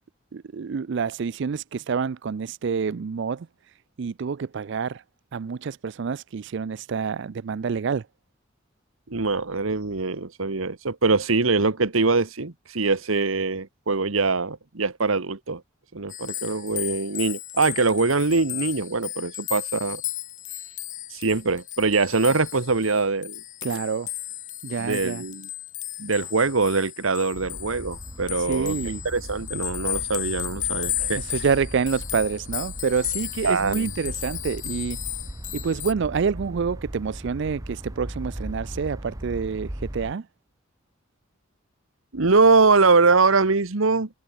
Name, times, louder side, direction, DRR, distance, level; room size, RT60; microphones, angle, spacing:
voice 1, 0.3-5.0 5.3-8.1 23.6-24.1 24.6-25.2 28.4-29.0 31.2-35.0 35.5-40.3, right 5 dB, 60° right, 0.4 m, -27 dB
voice 2, 9.1-15.6 15.9-20.0 21.1-23.4 24.8-25.5 26.0-28.8 29.0-31.2 33.4-33.9 42.1-44.1, right 3 dB, 90° right, 1.4 m, -23 dB
sound 1, 16.1-35.9, left 14 dB, 40° left, 0.5 m, -34 dB
sound 2, 27.3-40.1, right 1 dB, 15° right, 1.1 m, -38 dB
head